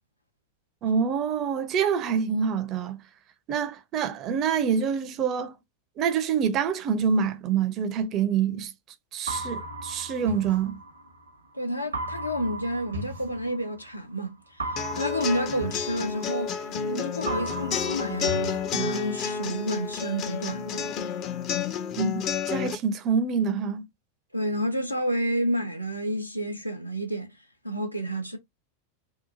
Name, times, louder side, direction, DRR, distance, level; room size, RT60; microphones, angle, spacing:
voice 1, 0.8-3.0 3.5-5.5 6.0-8.7 9.1-10.8 22.0-22.1 22.5-23.9, right 6 dB, 35° right, 0.4 m, -26 dB
sound 1, 9.3-11.3 11.9-14.0 14.6-16.9 17.3-19.3, right 2 dB, 75° right, 0.7 m, -36 dB
voice 2, 11.5-20.9 24.3-27.3 27.6-28.4, equal, 85° left, 0.5 m, -30 dB
sound 2, 14.8-22.7, left 7 dB, 35° left, 0.4 m, -30 dB
2.8 x 2.2 x 2.5 m
figure-of-eight pair, 90°, 0 cm